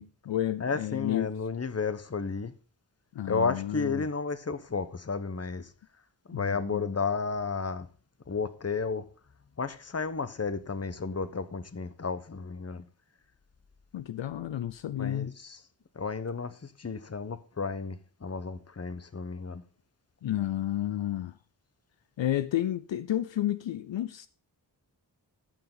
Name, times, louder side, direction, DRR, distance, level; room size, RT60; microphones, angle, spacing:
voice 1, 0.0-1.3 3.1-4.0 6.3-6.9 13.9-15.3 20.2-21.3 22.2-24.3, left 12 dB, 75° left, 0.6 m, -31 dB
voice 2, 0.6-2.5 3.3-5.7 6.3-7.9 8.3-9.0 9.6-12.8 15.0-15.6 15.9-19.6, left 4 dB, 35° left, 1.0 m, -32 dB
13.5 x 5.8 x 3.8 m
cardioid pair, 40°, 45 cm